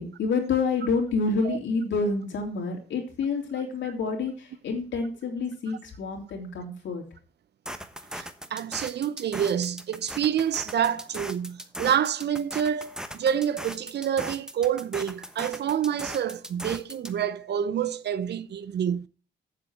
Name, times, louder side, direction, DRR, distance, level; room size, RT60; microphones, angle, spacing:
voice 1, 0.0-7.0, left 4 dB, 70° left, 3.1 m, -28 dB
sound 1, 7.7-17.2, equal, 5° right, 1.1 m, -38 dB
voice 2, 8.1-19.1, right 9 dB, 60° right, 0.7 m, -28 dB
7.6 x 7.1 x 6.3 m
supercardioid pair, 60°, 20 cm